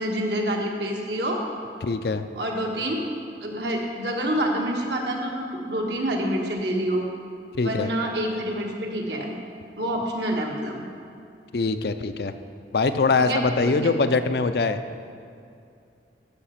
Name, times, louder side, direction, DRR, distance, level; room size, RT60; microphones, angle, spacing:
voice 1, 0.0-1.4 2.4-3.0 3.4-7.1 7.6-9.3 9.8-10.8 13.2-13.9, right 1 dB, 70° right, 0 dB, 1.5 m, -27 dB
voice 2, 1.8-2.3 7.5-7.9 11.5-12.3 12.7-14.8, left 4 dB, 60° left, 9 dB, 0.5 m, -23 dB
13.5 x 5.2 x 5.7 m, 2.5 s
head